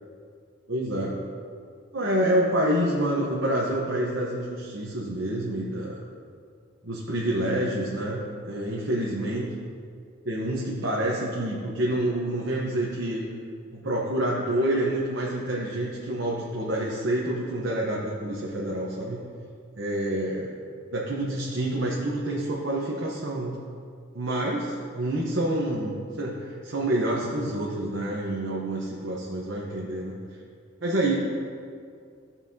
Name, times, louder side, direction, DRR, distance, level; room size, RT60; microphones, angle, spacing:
voice 1, 0.7-1.1 1.9-6.0 6.8-8.2 8.5-9.5 10.2-13.2 13.7-19.2 19.8-20.5 20.9-23.6 24.1-30.2 30.8-31.1, right 1 dB, 55° right, -5 dB, 1.0 m, -27 dB
14.5 x 5.6 x 2.8 m, 2.2 s
head